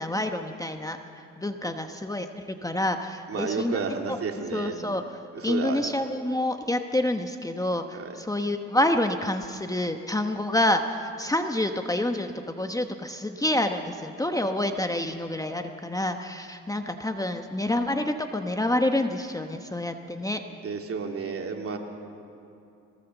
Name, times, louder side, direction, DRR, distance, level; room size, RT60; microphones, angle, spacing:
voice 1, 0.0-3.8 4.1-4.2 4.5-20.4, left 1 dB, 10° left, 6 dB, 1.0 m, -28 dB
voice 2, 3.3-4.8 5.4-5.8 20.6-21.8, right 5 dB, 50° right, 2 dB, 2.6 m, -31 dB
21.5 x 19.0 x 7.1 m, 2.7 s
cardioid pair, 90°, 30 cm